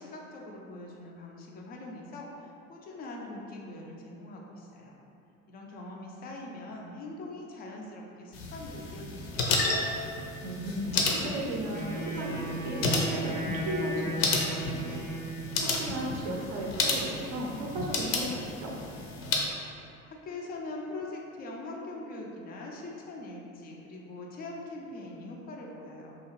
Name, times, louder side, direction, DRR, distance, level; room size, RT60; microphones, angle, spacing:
voice 1, 0.0-5.0 5.5-9.9 20.0-26.1, left 2 dB, 25° left, -1 dB, 0.3 m, -42 dB
sound 1, 8.3-19.5, left 3 dB, 65° left, 0.6 m, -32 dB
voice 2, 10.4-15.0 15.6-18.8, right 1 dB, 40° right, -2 dB, 0.5 m, -35 dB
Wind instrument woodwind instrument, 11.7-15.7, equal, 5° left, 0.7 m, -36 dB
2.7 x 2.3 x 2.9 m, 2.6 s
figure-of-eight pair, 65°, 42 cm